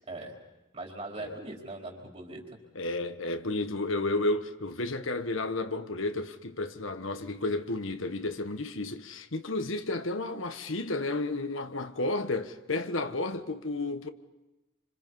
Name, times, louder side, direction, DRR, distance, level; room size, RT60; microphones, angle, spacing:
voice 1, 0.7-2.6, right 2 dB, 30° right, 4.4 m, -40 dB
voice 2, 2.7-14.1, left 2 dB, 70° left, 1.4 m, -32 dB
28.0 x 26.0 x 5.6 m
head